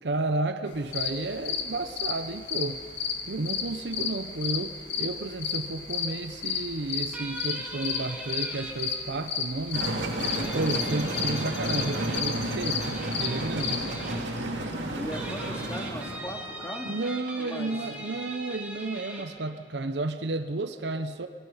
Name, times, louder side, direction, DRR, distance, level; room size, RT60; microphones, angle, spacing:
voice 1, 0.0-2.8 3.3-10.3 10.5-14.0 16.8-21.3, right 2 dB, 65° right, 10 dB, 0.8 m, -32 dB
sound 1, 0.7-13.8, left 7 dB, 75° left, 2.1 m, -32 dB
sound 2, 7.1-8.7 10.3-12.4 12.8-14.2 15.0-19.2, right 1 dB, 10° right, 2.6 m, -41 dB
sound 3, 9.7-16.2, right 1 dB, 80° right, 2.6 m, -32 dB
voice 2, 14.9-17.0 17.4-17.7, equal, 15° left, 0 dB, 2.6 m, -38 dB
23.0 x 20.0 x 5.7 m, 2.2 s
head